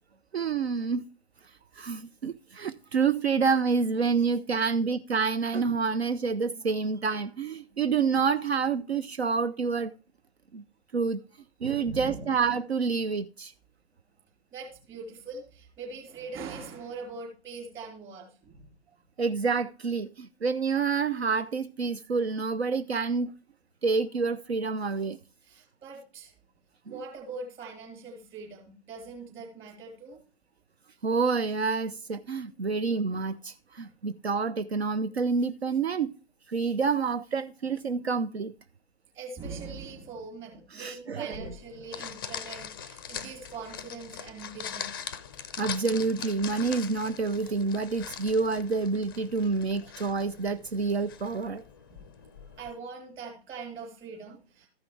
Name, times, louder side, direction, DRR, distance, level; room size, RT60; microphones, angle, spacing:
voice 1, 0.3-1.0 1.8-9.9 10.5-10.6 10.9-11.2 11.6-13.5 19.2-23.3 23.8-25.2 31.0-36.1 36.5-38.5 40.7-41.5 45.6-51.6, right 5 dB, 75° right, 0.6 m, -28 dB
voice 2, 11.9-12.3 14.5-18.7 25.4-26.3 26.9-30.2 39.1-45.1 49.8-49.9 51.9-52.1 52.6-54.7, right 4 dB, 20° right, 3.5 m, -42 dB
sound 1, 41.3-52.7, left 8 dB, 20° left, 0.4 m, -42 dB
14.0 x 5.8 x 3.3 m
figure-of-eight pair, 125°, 32 cm